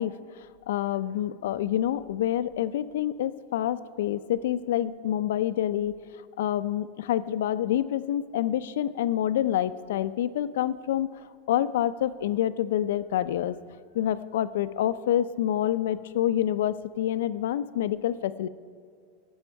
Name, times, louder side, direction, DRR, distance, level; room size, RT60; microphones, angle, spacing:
voice 1, 0.0-6.0 6.4-11.1 11.5-13.6 13.9-18.5, left 11 dB, 85° left, 14 dB, 0.4 m, -27 dB
16.5 x 6.3 x 4.6 m, 2.2 s
supercardioid pair, 155°, 0 cm